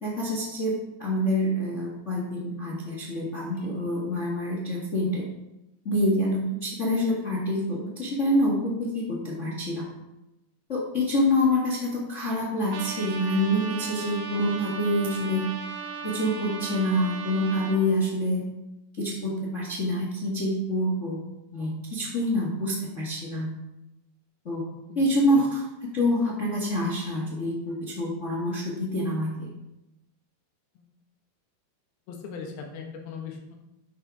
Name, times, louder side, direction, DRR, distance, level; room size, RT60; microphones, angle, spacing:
voice 1, 0.0-0.7 1.0-5.3 5.8-9.9 10.7-15.4 16.0-18.4 19.0-21.2 21.5-23.5 24.4-24.6 24.9-25.6 25.9-29.5, left 1 dB, 40° left, -3 dB, 1.1 m, -26 dB
Trumpet, 12.7-17.8, right 5 dB, 80° right, 2.7 m, -37 dB
voice 2, 32.1-33.5, left 5 dB, 90° left, 1 dB, 3.4 m, -39 dB
11.5 x 6.6 x 4.8 m, 0.94 s
omnidirectional pair, 4.2 m